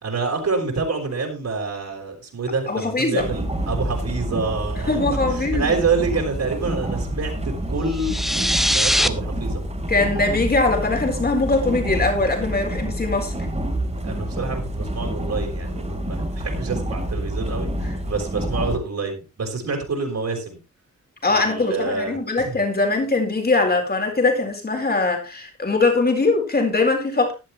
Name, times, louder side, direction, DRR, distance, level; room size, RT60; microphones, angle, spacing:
voice 1, 0.0-5.0 5.3-7.3 7.7-9.6 13.9-20.6 21.3-22.6, right 4 dB, 65° right, 4.9 m, -27 dB
voice 2, 2.7-3.3 4.9-5.8 9.9-13.3 17.8-18.0 21.2-27.3, left 3 dB, 30° left, 4.3 m, -21 dB
sound 1, 3.2-18.8, right 1 dB, 20° right, 3.0 m, -28 dB
sound 2, 7.9-9.1, equal, ahead, 0.8 m, -21 dB
15.5 x 11.5 x 3.1 m
wide cardioid pair, 140°, 30 cm